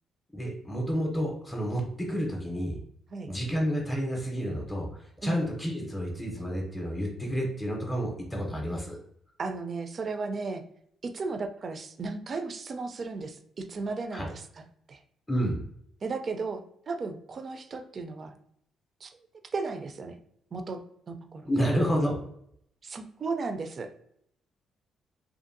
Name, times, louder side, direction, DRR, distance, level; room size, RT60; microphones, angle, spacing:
voice 1, 0.3-2.8 3.3-9.0 14.1-14.3 15.3-15.6 21.4-22.2, equal, 5° left, -1 dB, 0.6 m, -30 dB
voice 2, 9.4-10.6 11.0-14.4 14.9-15.0 16.0-18.4 19.0-19.2 19.5-20.2 20.5-20.8 21.1-21.4 22.8-23.9, right 4 dB, 45° right, 7 dB, 0.3 m, -35 dB
2.6 x 2.4 x 2.5 m, 0.70 s
cardioid pair, 90°, 0 cm